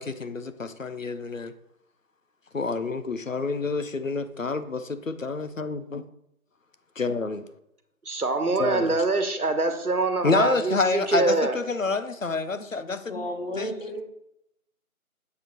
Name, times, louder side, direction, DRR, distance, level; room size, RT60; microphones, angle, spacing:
voice 1, 0.0-1.5 2.5-6.0 7.0-7.4 8.6-8.9 10.2-13.2 13.6-13.7, left 3 dB, 60° left, 11 dB, 0.6 m, -28 dB
voice 2, 8.0-11.6, right 3 dB, 85° right, 8 dB, 1.2 m, -24 dB
voice 3, 13.1-14.0, equal, 40° left, 1 dB, 1.3 m, -33 dB
7.3 x 6.3 x 3.0 m, 0.79 s
figure-of-eight pair, 165°, 44 cm